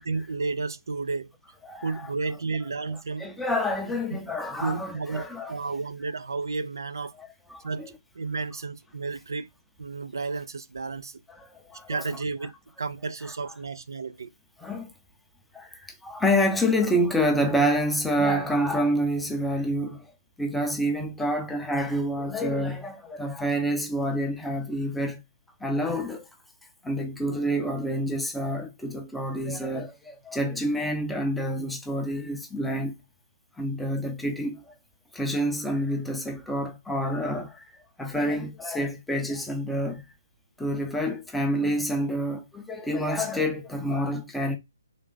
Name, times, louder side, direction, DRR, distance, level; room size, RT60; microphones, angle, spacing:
voice 1, 0.0-1.3 1.8-3.3 4.6-7.1 7.6-9.5 9.8-11.2 11.9-12.5 12.8-14.3, right 4 dB, 80° right, 0.4 m, -32 dB
voice 2, 1.7-2.1 3.2-5.5 7.2-7.9 11.3-12.0 14.6-14.9 15.5-20.1 20.4-25.2 25.6-26.3 26.8-33.0 33.6-34.7 35.1-37.7 38.0-40.0 40.6-44.6, equal, 5° left, 0.5 m, -28 dB
3.7 x 2.4 x 3.7 m
hypercardioid pair, 155°, 2 cm